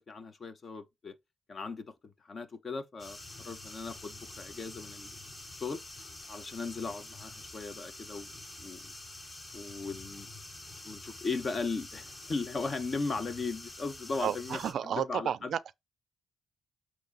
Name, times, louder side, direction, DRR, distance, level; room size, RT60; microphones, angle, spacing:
voice 1, 0.1-1.1 1.5-5.1 5.6-5.8 6.3-8.3 8.6-8.9 9.5-10.3 10.8-15.5, left 4 dB, 40° left, 1.1 m, -37 dB
sound 1, 3.0-14.7, left 2 dB, 25° left, 1.3 m, -47 dB
voice 2, 14.2-15.8, right 9 dB, 65° right, 0.4 m, -32 dB
7.6 x 2.9 x 5.3 m
cardioid pair, 105°, 0 cm